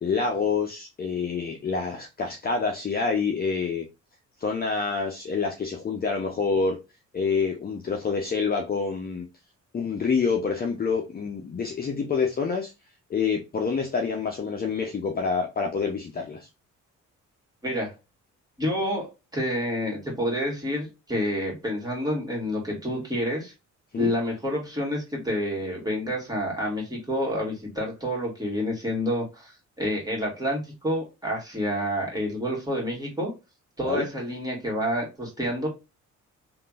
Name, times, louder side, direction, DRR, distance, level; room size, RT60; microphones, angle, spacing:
voice 1, 0.0-3.8 4.4-6.8 7.1-9.3 9.7-12.7 13.1-16.5 23.9-24.1 33.8-34.1, left 5 dB, 30° left, 0.6 m, -27 dB
voice 2, 18.6-23.5 24.0-29.5 29.8-33.3 33.8-35.7, equal, 15° right, 1.8 m, -28 dB
3.5 x 2.6 x 2.3 m
cardioid pair, 90°, 30 cm